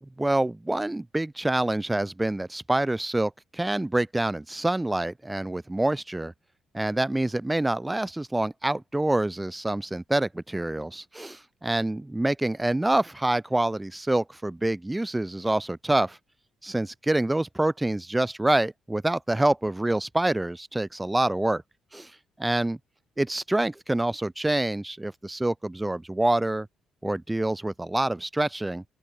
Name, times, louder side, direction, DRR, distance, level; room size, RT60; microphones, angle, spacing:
voice 1, 0.0-6.3 6.7-16.2 16.6-21.6 21.9-22.1 22.4-22.8 23.2-26.7 27.0-28.8, right 1 dB, 10° right, 0.8 m, -26 dB
open air
cardioid pair, 90°, 0 cm